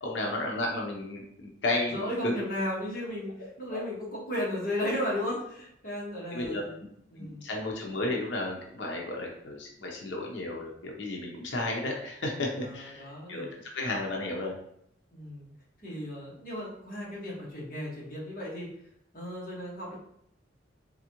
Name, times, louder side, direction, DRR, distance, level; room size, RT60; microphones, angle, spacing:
voice 1, 0.0-2.4 3.7-3.8 6.3-6.6 7.2-13.5 13.7-14.5, left 2 dB, 90° left, 0 dB, 0.8 m, -33 dB
voice 2, 1.9-6.8 7.1-7.4 12.6-13.5 15.1-15.5 15.8-18.7 19.1-20.0, left 1 dB, 50° left, -6 dB, 1.6 m, -35 dB
3.8 x 3.6 x 3.0 m, 0.71 s
head